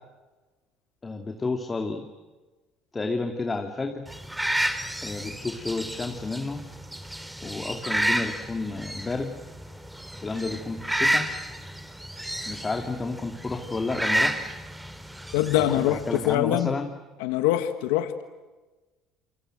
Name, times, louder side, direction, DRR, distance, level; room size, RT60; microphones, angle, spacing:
voice 1, 1.0-2.0 2.9-4.0 5.0-6.6 7.4-9.3 10.2-11.3 12.4-14.4 15.5-16.9, left 3 dB, 25° left, 4 dB, 2.6 m, -31 dB
sound 1, 4.1-16.4, right 1 dB, 5° right, 3.1 m, -31 dB
voice 2, 15.3-16.8 17.2-18.2, left 13 dB, 85° left, 10 dB, 1.5 m, -24 dB
29.0 x 24.0 x 7.8 m, 1.2 s
supercardioid pair, 80°, 0 cm